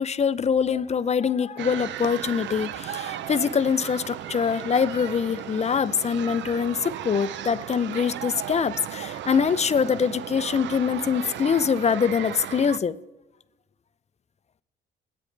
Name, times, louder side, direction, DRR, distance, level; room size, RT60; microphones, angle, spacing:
voice 1, 0.0-12.9, left 6 dB, 35° left, 0.6 m, -24 dB
sound 1, 1.6-12.8, right 11 dB, 70° right, 0.6 m, -35 dB
22.5 x 9.4 x 3.3 m
cardioid pair, 80°, 19 cm